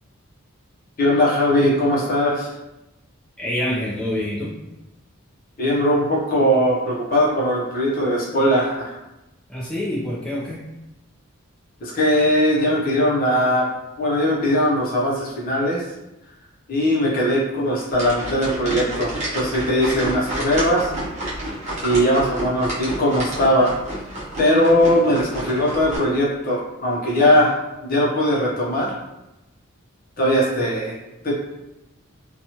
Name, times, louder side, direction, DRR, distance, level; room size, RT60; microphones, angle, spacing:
voice 1, 1.0-2.5 5.6-9.0 11.8-13.7 14.0-15.8 16.7-20.9 21.8-23.8 24.4-27.5 27.9-28.9 30.2-31.0 31.2-31.4, equal, 45° left, -4 dB, 0.7 m, -20 dB
voice 2, 3.4-4.5 9.5-10.6, left 1 dB, 5° left, -8 dB, 0.5 m, -26 dB
sound 1, 17.9-26.0, right 1 dB, 30° right, 0.8 m, -29 dB
2.9 x 2.3 x 2.8 m, 0.96 s
head